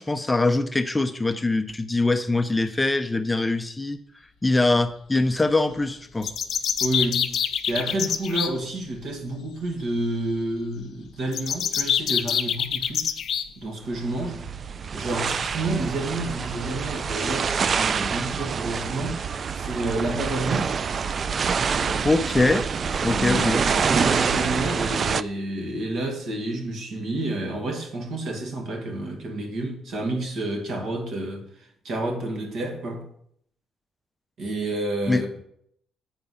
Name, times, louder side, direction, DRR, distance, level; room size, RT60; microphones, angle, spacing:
voice 1, 0.0-4.0 4.4-6.3 22.0-22.7 23.0-23.6 35.1-35.2, left 2 dB, 15° left, 0.6 m, -23 dB
sound 1, 6.2-8.5 11.3-13.5, left 8 dB, 65° left, 0.6 m, -25 dB
voice 2, 6.8-7.4 7.7-13.2 13.6-14.5 14.9-19.2 19.5-20.7 21.7-22.1 23.0-33.1 34.4-35.3, right 2 dB, 70° right, 2.0 m, -29 dB
sound 2, 13.8-25.2, right 6 dB, 45° right, 0.3 m, -26 dB
7.8 x 4.7 x 5.6 m
cardioid pair, 90°, 0 cm